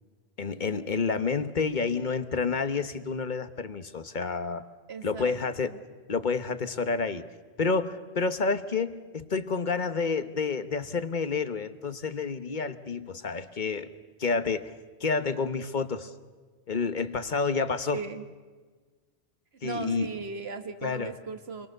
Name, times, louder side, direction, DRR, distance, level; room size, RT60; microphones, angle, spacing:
voice 1, 0.4-4.6 5.0-5.7 6.1-7.3 7.6-13.9 14.2-14.7 15.0-16.1 16.7-18.0 19.6-20.1 20.8-21.1, left 4 dB, 50° left, 10 dB, 1.3 m, -29 dB
voice 2, 4.9-5.7 17.9-18.3 19.6-21.7, right 4 dB, 85° right, 7 dB, 1.8 m, -37 dB
28.5 x 23.0 x 6.7 m, 1.4 s
omnidirectional pair, 1.0 m